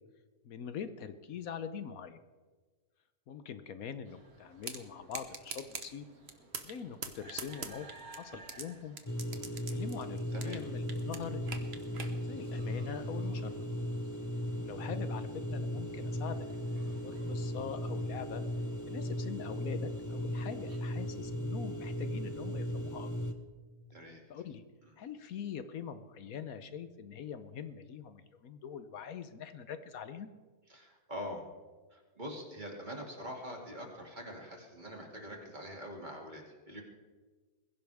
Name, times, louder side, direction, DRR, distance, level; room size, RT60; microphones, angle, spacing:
voice 1, 0.4-2.2 3.3-6.1 6.6-9.0 9.7-11.7 12.2-13.5 14.6-16.5 16.9-18.4 18.9-23.1 24.3-24.6 25.0-30.3, left 7 dB, 70° left, 11 dB, 1.2 m, -43 dB
sound 1, 4.0-20.8, right 2 dB, 65° right, 2.6 m, -59 dB
sound 2, 4.6-4.8 5.1-5.9 6.3-6.8 7.0-8.6 9.0-10.6 10.9-12.1, right 5 dB, 45° right, 1.4 m, -41 dB
sound 3, 9.1-23.3, equal, 15° left, 0.9 m, -37 dB
voice 2, 23.9-24.2 24.8-24.9 30.7-31.4 31.9-36.8, equal, 30° right, 0 dB, 2.7 m, -44 dB
21.5 x 16.0 x 3.5 m, 1.4 s
omnidirectional pair, 1.6 m